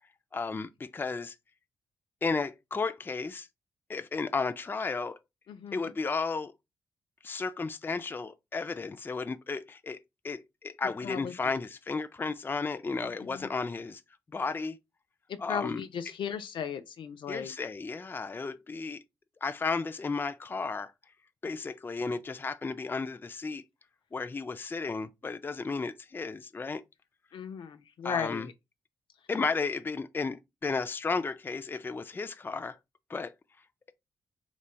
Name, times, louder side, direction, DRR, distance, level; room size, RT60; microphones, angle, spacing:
voice 1, 0.3-1.3 2.2-3.5 3.9-5.2 5.7-6.5 7.2-10.0 10.2-14.0 14.3-14.8 15.4-15.8 17.3-19.0 19.4-20.9 21.4-23.6 24.1-26.8 28.0-28.5 29.3-32.8 33.1-33.3, left 4 dB, 25° left, 0.4 m, -33 dB
voice 2, 5.5-5.9 10.8-11.3 13.0-13.5 15.3-17.5 27.3-28.5, left 7 dB, 75° left, 0.6 m, -37 dB
4.0 x 3.2 x 2.2 m
cardioid pair, 60°, 8 cm